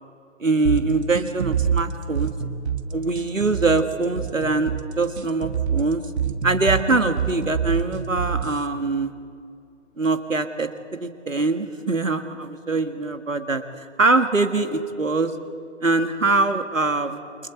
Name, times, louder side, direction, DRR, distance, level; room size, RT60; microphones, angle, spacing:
voice 1, 0.4-2.3 2.9-6.0 6.4-9.1 10.0-10.7 11.0-15.3 15.8-17.2, right 3 dB, 85° right, 9 dB, 1.8 m, -23 dB
sound 1, 0.6-8.7, right 7 dB, 60° right, 1.3 m, -26 dB
29.0 x 23.0 x 4.5 m, 2.5 s
figure-of-eight pair, 135°, 38 cm